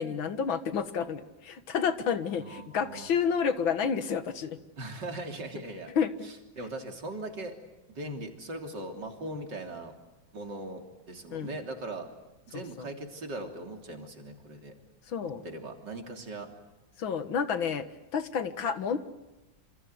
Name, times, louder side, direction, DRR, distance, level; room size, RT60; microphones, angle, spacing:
voice 1, 0.0-4.6 6.0-6.3 8.0-8.2 9.3-9.4 11.3-11.6 12.5-12.9 15.1-15.4 17.0-17.9 18.1-19.0, left 6 dB, 80° left, 10 dB, 2.3 m, -30 dB
voice 2, 2.4-3.1 4.8-5.9 6.2-7.6 7.9-9.9 10.3-12.1 12.5-14.7 15.2-16.5, right 2 dB, 60° right, 3 dB, 3.9 m, -40 dB
27.5 x 27.0 x 8.1 m, 1.0 s
omnidirectional pair, 2.1 m